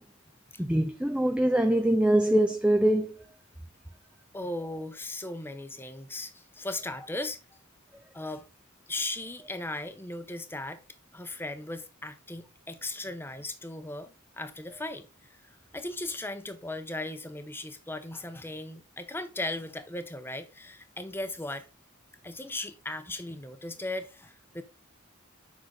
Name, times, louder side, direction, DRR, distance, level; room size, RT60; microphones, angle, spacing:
voice 1, 0.6-3.2, right 1 dB, 5° right, 0.4 m, -23 dB
voice 2, 4.3-7.4 8.1-8.5 8.9-10.8 11.1-15.1 15.7-21.6 22.2-24.6, left 2 dB, 10° left, 0.8 m, -37 dB
7.7 x 5.8 x 3.9 m
head